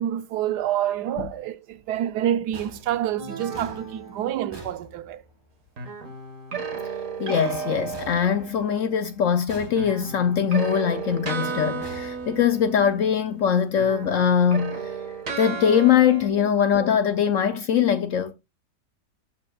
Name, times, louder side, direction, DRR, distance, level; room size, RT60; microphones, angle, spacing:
voice 1, 0.0-5.2 16.3-16.5, right 11 dB, 80° right, 1.2 m, -27 dB
Lift Door bangs, 2.5-5.6 7.9-9.0 9.5-10.3 11.8-12.9, right 2 dB, 15° right, 1.2 m, -45 dB
sound 1, 3.2-5.0, right 4 dB, 30° right, 2.0 m, -39 dB
sound 2, 5.8-8.8 9.8-13.4 13.7-16.3, right 5 dB, 55° right, 1.7 m, -33 dB
voice 2, 7.2-14.9 15.4-18.3, left 8 dB, 70° left, 0.8 m, -22 dB
13.5 x 5.1 x 2.3 m
omnidirectional pair, 1.8 m